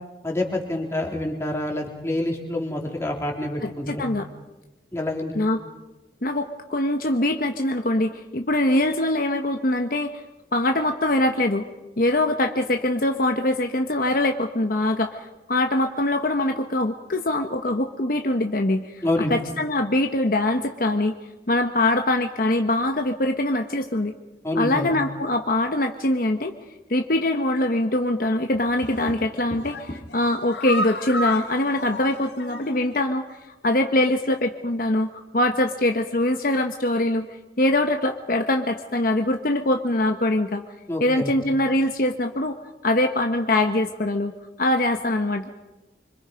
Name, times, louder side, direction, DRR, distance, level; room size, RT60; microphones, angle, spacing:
voice 1, 0.2-4.1 4.9-5.4 19.0-19.4 24.4-24.9 40.9-41.3, left 1 dB, 15° left, 0 dB, 3.6 m, -27 dB
voice 2, 3.6-4.3 5.3-5.6 6.2-10.2 10.5-11.7 12.0-19.0 19.3-21.1 21.5-24.1 24.6-26.5 26.9-33.2 33.6-37.3 37.6-40.6 41.0-42.6 42.8-45.5, left 1 dB, 50° left, 5 dB, 1.1 m, -23 dB
Tap, 28.5-30.2 32.2-33.0, equal, 35° left, 2.6 m, -40 dB
sound 1, 28.8-29.2 29.6-33.0 33.3-33.4 33.7-33.8, left 1 dB, 80° left, 1.9 m, -32 dB
26.0 x 25.5 x 5.3 m, 1.1 s
head